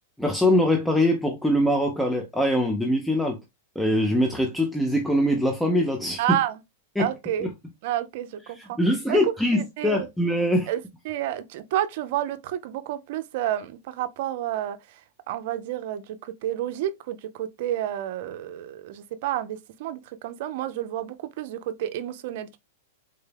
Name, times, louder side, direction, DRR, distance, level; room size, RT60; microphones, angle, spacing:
voice 1, 0.2-3.4 3.8-6.2 7.0-7.1 7.4-7.5 8.6-10.7, left 1 dB, 5° left, 0.6 m, -23 dB
voice 2, 6.2-6.6 7.0-7.5 7.8-8.8 9.1-9.2 9.5-10.1 10.7-14.8 15.3-22.6, right 12 dB, 60° right, 0.5 m, -30 dB
3.9 x 2.2 x 3.3 m
hypercardioid pair, 130°, 0 cm